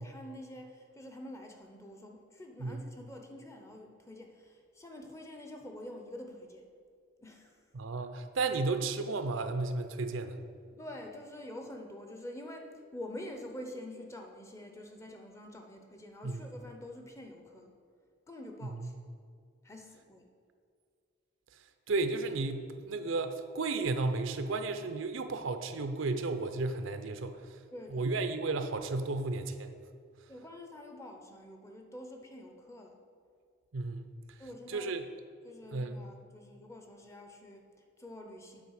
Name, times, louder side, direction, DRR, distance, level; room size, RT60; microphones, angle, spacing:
voice 1, 0.0-6.7 7.2-7.7 10.7-17.7 18.3-18.9 19.6-20.3 27.7-28.3 30.3-33.0 34.4-35.0 35.4-38.6, left 1 dB, 15° left, 3 dB, 0.6 m, -47 dB
voice 2, 7.7-10.4 16.2-16.4 21.9-27.4 27.9-29.7 33.7-34.1 34.7-35.0 35.7-35.9, right 3 dB, 70° right, 8 dB, 0.5 m, -33 dB
8.4 x 4.1 x 6.3 m, 2.2 s
head